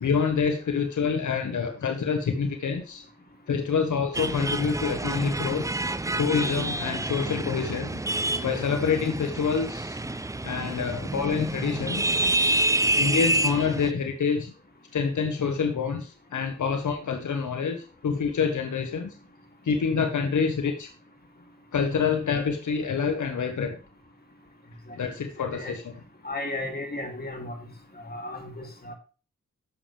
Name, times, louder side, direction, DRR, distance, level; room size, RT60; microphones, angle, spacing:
voice 1, 0.0-3.0 3.5-5.6 6.2-7.9 8.4-10.0 10.4-12.1 13.0-14.5 14.9-19.1 19.6-20.9 21.7-23.8 24.9-25.9, left 6 dB, 80° left, 6 dB, 1.3 m, -27 dB
sound 1, 4.1-13.9, right 2 dB, 10° right, 0.5 m, -28 dB
voice 2, 26.2-27.5 28.0-28.9, left 2 dB, 30° left, 3 dB, 2.9 m, -35 dB
11.0 x 7.4 x 3.4 m, 0.35 s
cardioid pair, 70°, 30 cm